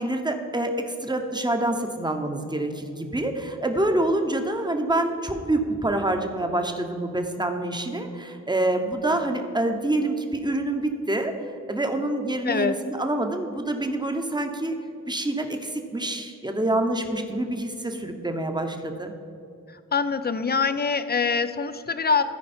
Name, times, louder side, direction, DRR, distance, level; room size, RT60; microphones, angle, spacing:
voice 1, 0.0-11.3 11.7-14.7 15.1-19.1, right 1 dB, 15° right, 5 dB, 1.0 m, -26 dB
voice 2, 12.4-12.8 19.9-22.2, left 5 dB, 30° left, 11 dB, 0.6 m, -24 dB
13.5 x 4.7 x 4.4 m, 2.5 s
cardioid pair, 50°, 32 cm